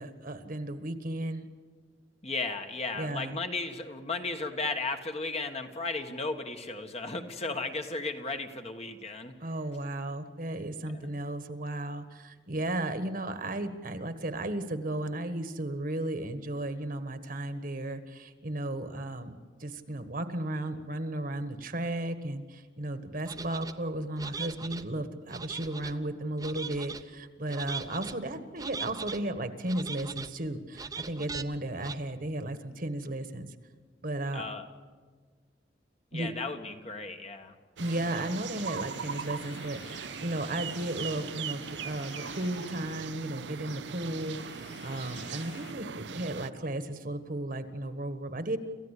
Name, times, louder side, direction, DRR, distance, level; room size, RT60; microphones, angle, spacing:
voice 1, 0.0-1.5 2.9-3.4 9.4-33.5 34.0-34.4 36.1-36.3 37.8-48.6, right 1 dB, 50° right, 10 dB, 1.5 m, -34 dB
voice 2, 2.2-9.3 10.9-11.1 34.3-34.6 36.1-37.6, left 3 dB, 35° left, 5 dB, 1.5 m, -35 dB
sound 1, 23.3-23.7 24.2-24.8 25.3-25.9 26.4-27.0 27.5-28.1 28.6-29.2 29.7-30.3 30.7-31.4 31.8-32.0, right 4 dB, 20° right, 0.8 m, -40 dB
sound 2, 37.8-45.7, left 4 dB, 70° left, 2.2 m, -52 dB
sound 3, 37.8-46.5, right 7 dB, 70° right, 0.6 m, -40 dB
28.0 x 15.0 x 8.4 m, 1.5 s
head